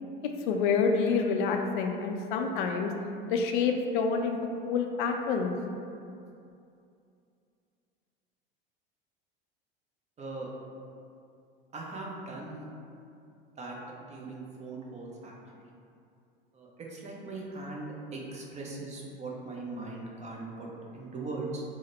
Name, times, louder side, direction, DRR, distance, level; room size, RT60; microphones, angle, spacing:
voice 1, 0.5-2.9 3.3-4.4 4.6-5.5, left 5 dB, 60° left, 4 dB, 0.4 m, -27 dB
voice 2, 10.2-10.5 11.7-12.7 13.6-15.3 15.6-15.7 16.5-21.6, right 3 dB, 25° right, -2 dB, 0.6 m, -40 dB
3.9 x 2.0 x 3.1 m, 2.5 s
figure-of-eight pair, 80°, 29 cm